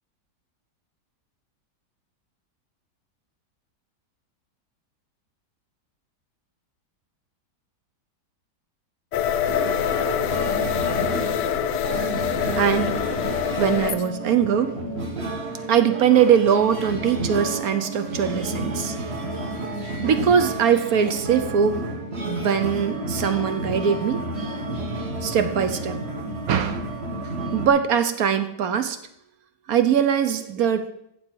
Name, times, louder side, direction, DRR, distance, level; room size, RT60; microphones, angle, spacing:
sound 1, 9.1-14.0, left 9 dB, 80° left, 1.2 m, -25 dB
sound 2, 9.5-27.7, right 1 dB, 40° right, 1.7 m, -31 dB
voice 1, 12.6-12.9 13.6-14.7 15.5-19.1 20.0-21.8 22.2-24.3 25.2-26.0 26.5-26.9 27.5-29.0 29.7-30.9, right 8 dB, 65° right, 10 dB, 1.1 m, -21 dB
14.5 x 7.2 x 4.6 m, 0.77 s
omnidirectional pair, 1.8 m